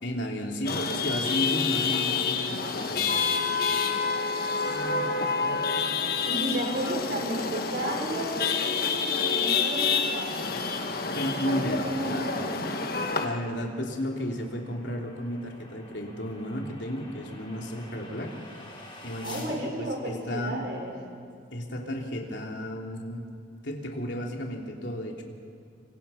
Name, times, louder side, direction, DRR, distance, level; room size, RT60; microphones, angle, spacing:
voice 1, 0.0-3.2 11.1-11.8 12.1-12.3 13.2-20.6 21.5-23.3 23.6-25.2, equal, 70° left, 0 dB, 3.3 m, -33 dB
Chatter / Vehicle horn car horn honking / Traffic noise roadway noise, 0.7-13.3, left 5 dB, 50° left, 1.5 m, -28 dB
voice 2, 4.7-5.8 6.2-10.5 11.3-12.7 19.2-20.9, right 1 dB, 55° right, 1 dB, 5.5 m, -34 dB
sound 1, 11.8-19.5, left 2 dB, 25° left, 4.8 m, -50 dB
26.5 x 26.0 x 5.8 m, 2.3 s
head